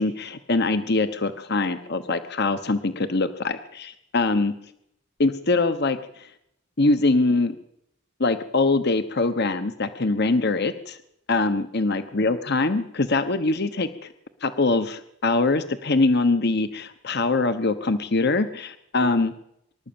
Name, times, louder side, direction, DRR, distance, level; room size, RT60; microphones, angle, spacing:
voice 1, 0.0-4.6 5.2-6.3 6.8-7.6 8.2-11.0 11.3-13.9 14.4-19.3, left 3 dB, 50° left, 11 dB, 1.1 m, -23 dB
24.5 x 12.5 x 8.8 m, 0.74 s
head